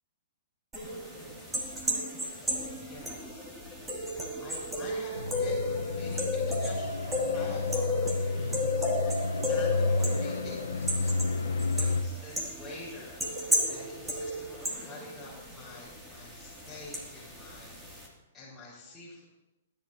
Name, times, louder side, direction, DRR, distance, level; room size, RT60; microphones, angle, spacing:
sound 1, 0.7-18.1, left 1 dB, 10° right, 2.7 m, -34 dB
voice 1, 0.9-1.9 2.1-3.4 4.0-9.2 9.5-11.3 11.7-13.2 13.7-17.7 18.3-19.2, left 2 dB, 10° left, -10 dB, 5.0 m, -48 dB
sound 2, 5.2-12.0, left 3 dB, 90° left, 1.0 m, -31 dB
18.5 x 10.5 x 2.9 m, 0.99 s
hypercardioid pair, 130°, 0 cm